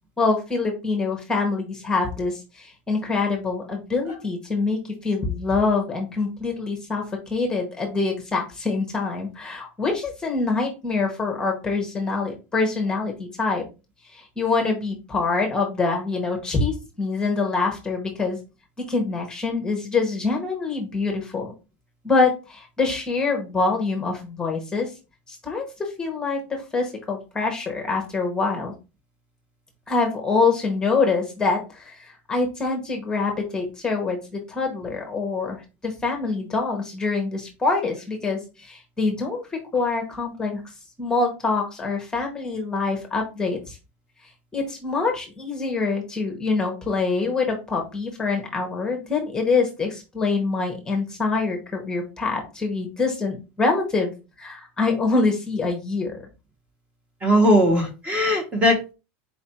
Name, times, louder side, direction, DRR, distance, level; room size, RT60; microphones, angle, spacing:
voice 1, 0.2-7.0 7.3-13.6 14.1-18.4 18.9-21.5 22.0-24.9 25.3-28.7 29.9-40.6 41.0-43.8 44.5-54.1 54.4-56.2, left 4 dB, 10° left, 2 dB, 0.8 m, -25 dB
voice 2, 57.2-58.9, equal, 15° right, 3 dB, 0.9 m, -19 dB
4.4 x 2.4 x 4.2 m, 0.29 s
supercardioid pair, 170°, 7 cm